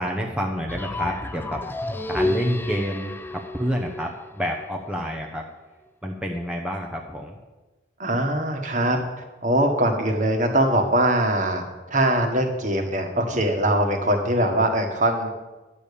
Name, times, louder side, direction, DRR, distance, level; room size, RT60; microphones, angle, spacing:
voice 1, 0.0-1.6 2.1-5.4 6.0-7.4 12.3-12.4, equal, 5° right, 0 dB, 0.8 m, -29 dB
sound 1, 0.7-4.6, left 1 dB, 10° left, 0.4 m, -30 dB
voice 2, 2.2-2.6 8.0-9.0 9.4-15.3, right 1 dB, 40° right, 4 dB, 1.6 m, -22 dB
11.0 x 7.0 x 8.4 m, 1.1 s
head